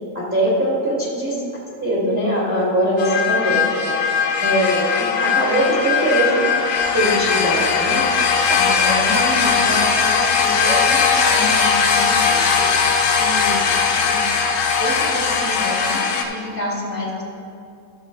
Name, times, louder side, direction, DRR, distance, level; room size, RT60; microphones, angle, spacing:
voice 1, 0.1-1.4 1.8-3.7 4.0-4.1 4.4-6.4 6.9-8.0 8.5-12.4 13.0-13.7 14.0-14.2 14.7-17.2, equal, 10° right, -7 dB, 0.4 m, -23 dB
sound 1, 3.0-16.2, left 6 dB, 90° left, 2.4 m, -19 dB
Giggle, 8.5-9.8 10.6-11.1 11.4-11.6 12.5-12.8, right 4 dB, 70° right, 1.3 m, -29 dB
13.5 x 6.5 x 3.9 m, 2.5 s
omnidirectional pair, 3.7 m